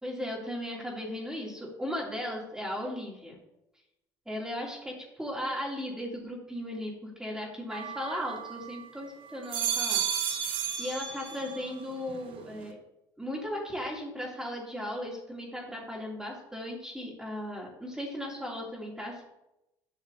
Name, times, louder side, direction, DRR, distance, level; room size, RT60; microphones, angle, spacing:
voice 1, 0.0-3.4 4.3-10.0 10.8-12.8 13.2-19.2, left 1 dB, 5° right, -3 dB, 2.8 m, -36 dB
sound 1, 7.7-8.9 9.3-11.7 12.1-12.7, right 8 dB, 60° right, 1.1 m, -33 dB
11.0 x 6.0 x 2.8 m, 0.89 s
supercardioid pair, 75°, 10 cm